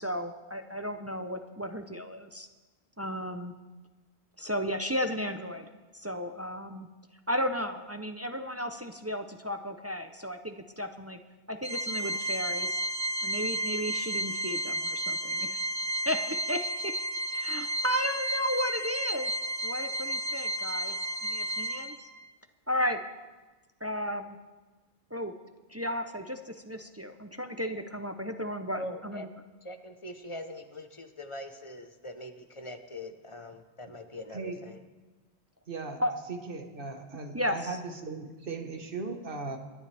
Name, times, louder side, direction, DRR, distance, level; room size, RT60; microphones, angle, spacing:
voice 1, 0.0-2.5 3.0-3.5 4.4-5.7 5.9-6.9 7.3-11.2 11.5-12.8 13.2-15.6 16.1-16.9 17.3-19.3 19.6-21.0 21.2-22.1 22.7-23.0 23.8-24.4 25.1-25.3 25.7-29.3 36.0-36.1 37.3-37.6, equal, 20° right, 6 dB, 0.5 m, -34 dB
Organ, 11.6-22.2, right 1 dB, 35° right, 0.9 m, -32 dB
voice 2, 28.7-29.3 29.6-34.8, left 1 dB, 30° left, 7 dB, 1.0 m, -42 dB
voice 3, 35.7-36.0 36.3-39.6, right 4 dB, 55° right, 4 dB, 1.6 m, -38 dB
27.5 x 10.5 x 3.4 m, 1.2 s
omnidirectional pair, 1.1 m